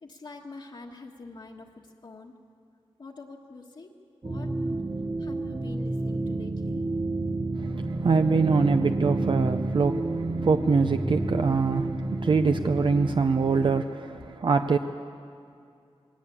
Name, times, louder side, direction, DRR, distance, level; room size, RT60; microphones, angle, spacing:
voice 1, 0.0-2.3 3.0-3.9 4.2-4.5 5.2-6.9, left 3 dB, 55° left, -2 dB, 1.5 m, -45 dB
sound 1, 4.2-13.8, right 2 dB, 30° right, 1.0 m, -30 dB
voice 2, 7.6-14.8, right 4 dB, 55° right, 7 dB, 0.7 m, -24 dB
20.5 x 17.5 x 8.7 m, 2.3 s
wide cardioid pair, 90°, 10 cm